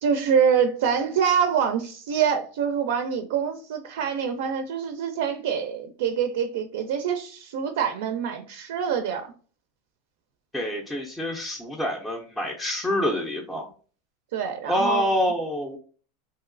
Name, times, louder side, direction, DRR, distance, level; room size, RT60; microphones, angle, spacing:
voice 1, 0.0-9.3 14.3-15.0, right 7 dB, 70° right, 7 dB, 0.4 m, -25 dB
voice 2, 10.5-13.7 14.7-15.8, left 1 dB, 5° left, -2 dB, 0.4 m, -26 dB
3.0 x 2.7 x 2.5 m, 0.40 s
supercardioid pair, 150°, 0 cm